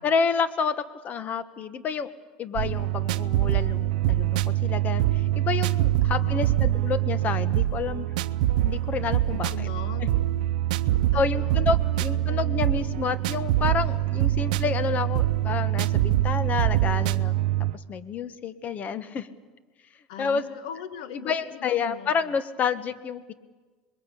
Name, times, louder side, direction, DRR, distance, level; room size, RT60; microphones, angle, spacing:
voice 1, 0.0-2.1 2.4-8.1 8.6-9.7 11.1-17.4 17.7-19.3 20.2-20.5 21.1-23.3, left 5 dB, 40° left, 13 dB, 1.5 m, -29 dB
sound 1, 2.6-17.7, right 14 dB, 80° right, 0.7 m, -24 dB
voice 2, 6.1-6.6 9.2-10.1 10.9-11.7 12.1-12.6 20.1-22.4, left 9 dB, 85° left, 10 dB, 1.6 m, -40 dB
26.5 x 21.5 x 8.4 m, 1.3 s
supercardioid pair, 105°, 4 cm